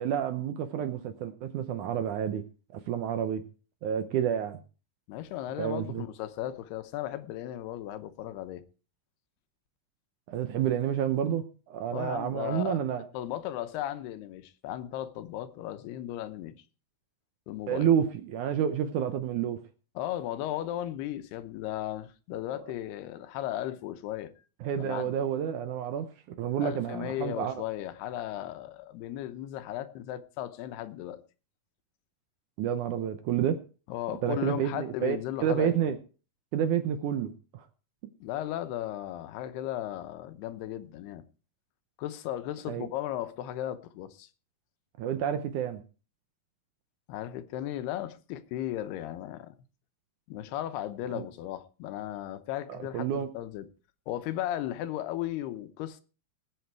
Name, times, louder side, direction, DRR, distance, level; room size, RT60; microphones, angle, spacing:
voice 1, 0.0-2.4 2.7-3.4 3.8-4.6 5.6-6.0 10.3-13.0 17.7-19.6 24.6-26.1 26.4-27.5 32.6-33.6 34.2-36.0 36.5-37.6 42.7-42.9 45.0-45.8 51.1-51.2 52.7-53.3, right 9 dB, 75° right, 1.9 m, -29 dB
voice 2, 5.1-8.6 11.9-12.8 13.1-16.6 17.5-17.9 20.0-24.3 24.8-25.2 26.6-31.2 33.9-35.9 38.2-41.2 42.0-44.3 47.1-49.5 50.3-53.7 54.1-56.0, left 13 dB, 85° left, 3.0 m, -36 dB
19.5 x 8.5 x 4.7 m
omnidirectional pair, 4.5 m